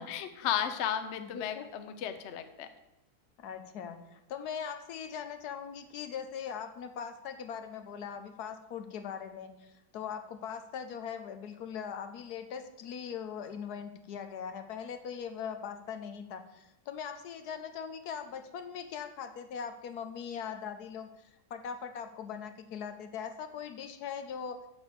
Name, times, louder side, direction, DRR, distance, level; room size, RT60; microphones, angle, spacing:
voice 1, 0.0-2.7, left 9 dB, 55° left, 9 dB, 0.8 m, -34 dB
voice 2, 1.2-1.7 3.4-24.6, left 7 dB, 75° left, 8 dB, 1.3 m, -40 dB
6.7 x 6.2 x 6.8 m, 0.91 s
omnidirectional pair, 1.8 m